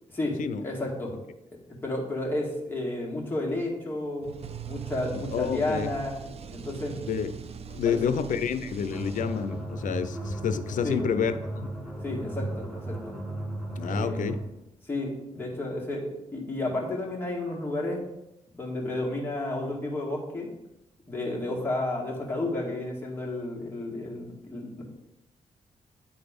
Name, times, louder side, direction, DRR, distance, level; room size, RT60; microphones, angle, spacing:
voice 1, 0.1-1.1 1.8-4.4 4.7-6.2 6.5-7.0 7.9-8.2 10.8-11.0 12.0-13.1 13.8-14.3 14.8-18.0 18.5-20.5 21.1-24.8, left 2 dB, 15° left, -3 dB, 2.0 m, -32 dB
sound 1, 4.2-9.7, right 8 dB, 50° right, 0.5 m, -41 dB
voice 2, 5.3-5.9 7.1-7.3 7.7-11.7 13.8-14.4, left 7 dB, 80° left, 11 dB, 0.5 m, -29 dB
sound 2, 8.9-14.6, right 1 dB, ahead, 1.2 m, -35 dB
8.7 x 4.0 x 5.1 m, 0.89 s
wide cardioid pair, 110°, 13 cm